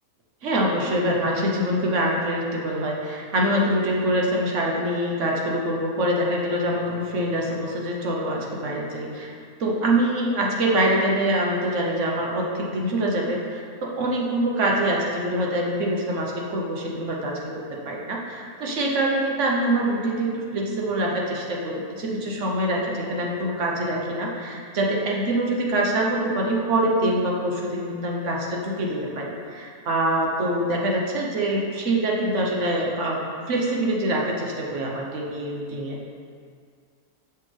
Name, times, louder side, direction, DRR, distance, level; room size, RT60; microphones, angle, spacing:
voice 1, 0.4-9.3 9.6-36.0, right 1 dB, 60° right, -1 dB, 1.1 m, -25 dB
6.8 x 5.8 x 3.2 m, 2.1 s
omnidirectional pair, 1.6 m